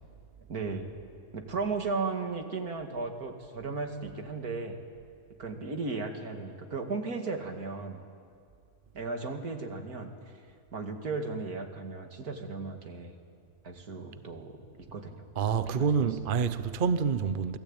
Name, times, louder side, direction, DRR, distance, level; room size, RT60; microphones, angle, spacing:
voice 1, 0.5-0.9 1.3-4.8 5.4-8.0 8.9-10.1 10.7-13.1 13.6-14.6 14.9-15.2 15.6-16.1, right 4 dB, 90° right, 2.6 m, -35 dB
voice 2, 15.4-17.6, right 6 dB, 45° right, 0.9 m, -27 dB
27.5 x 19.5 x 8.8 m
omnidirectional pair, 1.5 m